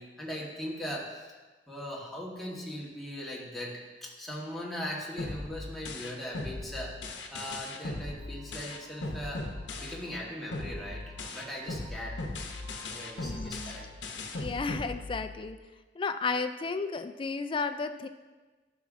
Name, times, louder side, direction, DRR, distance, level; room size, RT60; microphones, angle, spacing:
voice 1, 0.0-1.4 1.7-7.0 7.3-9.5 9.8-12.2 12.8-13.9, equal, ahead, -5 dB, 1.3 m, -39 dB
sound 1, 5.2-10.2 10.5-15.5, left 2 dB, 90° left, 0.8 m, -38 dB
sound 2, 7.0-13.9, right 2 dB, 40° right, 1.5 m, -55 dB
voice 2, 13.2-13.7 14.3-15.6 16.0-18.1, left 4 dB, 30° left, 9 dB, 0.3 m, -33 dB
11.5 x 6.0 x 2.6 m, 1.2 s
head